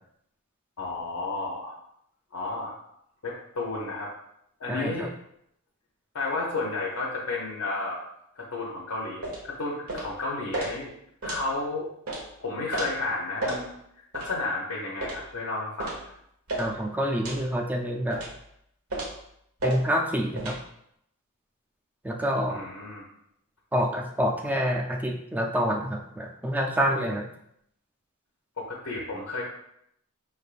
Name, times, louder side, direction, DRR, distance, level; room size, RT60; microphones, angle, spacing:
voice 1, 0.8-1.8 2.3-2.8 3.2-4.1 4.6-5.1 6.1-8.0 8.3-10.9 11.2-11.9 12.4-13.7 14.1-16.1 22.5-23.0 28.6-29.4, left 3 dB, 75° left, -4 dB, 0.7 m, -32 dB
voice 2, 4.7-5.1 16.6-18.2 19.6-20.5 22.0-22.6 23.7-27.3, equal, 5° right, 1 dB, 0.4 m, -27 dB
sound 1, 9.2-9.4 9.9-10.1 10.5-10.7 11.2-11.4 12.1-12.2 12.7-12.9 13.4-13.6 14.1-14.3 15.0-15.2 15.8-16.0 16.5-16.7 17.2-17.4 18.1-18.4 18.9-19.2 19.6-19.8 20.4-20.6, right 2 dB, 75° right, 1.0 m, -32 dB
5.3 x 3.3 x 2.4 m, 0.75 s
head